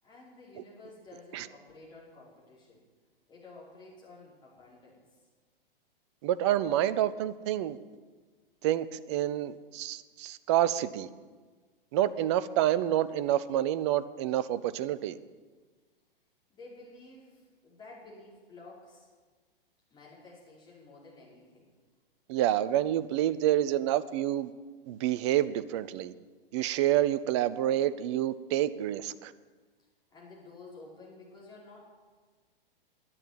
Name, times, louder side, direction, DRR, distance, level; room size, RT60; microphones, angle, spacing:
voice 1, 0.0-2.8 3.3-5.0 16.5-19.1 19.9-21.7 30.1-31.8, left 3 dB, 15° left, -6 dB, 5.1 m, -51 dB
voice 2, 6.2-7.8 8.6-11.1 11.9-15.2 22.3-24.5 24.9-26.1 26.5-29.3, right 12 dB, 30° right, 15 dB, 0.5 m, -28 dB
10.5 x 9.0 x 9.5 m, 1.4 s
figure-of-eight pair, 105°, 29 cm